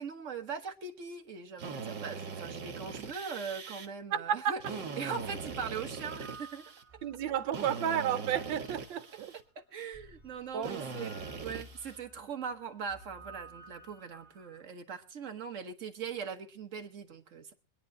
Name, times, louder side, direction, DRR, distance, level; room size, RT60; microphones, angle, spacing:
voice 1, 0.0-6.6 9.3-17.5, right 6 dB, 45° right, 1.3 m, -41 dB
Drill, 1.6-3.9 4.6-6.8 7.5-9.4 10.6-12.0, right 5 dB, 65° right, 2.0 m, -41 dB
voice 2, 4.1-4.5 7.0-9.3 10.5-10.7, right 9 dB, 85° right, 1.6 m, -32 dB
sound 1, 5.2-9.2 9.9-14.6, right 2 dB, 5° right, 2.7 m, -54 dB
24.5 x 9.9 x 2.8 m
omnidirectional pair, 2.1 m